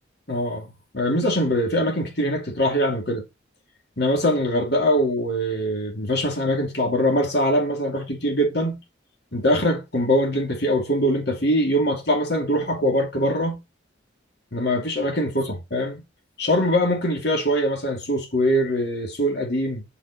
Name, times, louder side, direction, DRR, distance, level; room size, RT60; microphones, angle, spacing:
voice 1, 0.3-0.7 0.9-3.2 4.0-8.8 9.3-13.6 14.5-16.0 16.4-19.8, equal, 55° left, 2.7 m, -22 dB
6.8 x 5.0 x 4.2 m
head